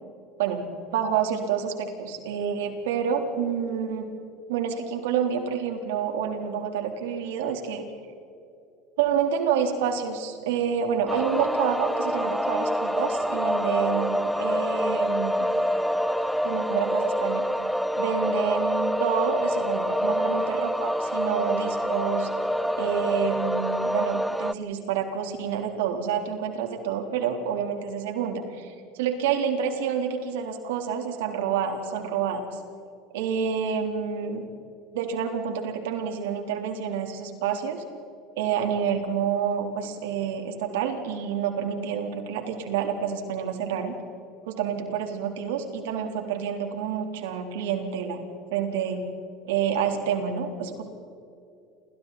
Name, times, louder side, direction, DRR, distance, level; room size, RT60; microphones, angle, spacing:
voice 1, 0.9-4.1 4.5-7.8 9.0-15.5 16.4-17.4 18.0-22.3 22.8-32.6 33.1-34.4 34.9-37.8 38.4-43.9 44.5-48.2 48.5-49.0 49.4-50.8, right 7 dB, 85° right, 4 dB, 3.6 m, -28 dB
sound 1, 11.1-24.5, equal, ahead, 0.6 m, -26 dB
29.5 x 24.5 x 4.3 m, 2.6 s
supercardioid pair, 105°, 0 cm